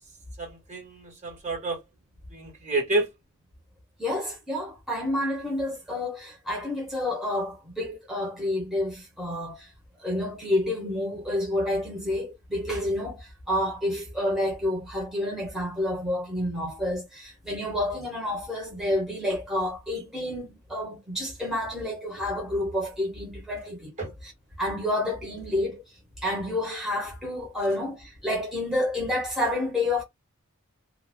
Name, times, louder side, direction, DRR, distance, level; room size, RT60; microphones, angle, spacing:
voice 1, 0.4-1.8 2.3-3.1 24.0-24.1, right 2 dB, 35° right, 1.2 m, -29 dB
voice 2, 4.0-9.7 10.0-24.3 24.6-25.8 26.2-30.0, left 1 dB, ahead, 0.9 m, -29 dB
2.5 x 2.2 x 3.3 m
head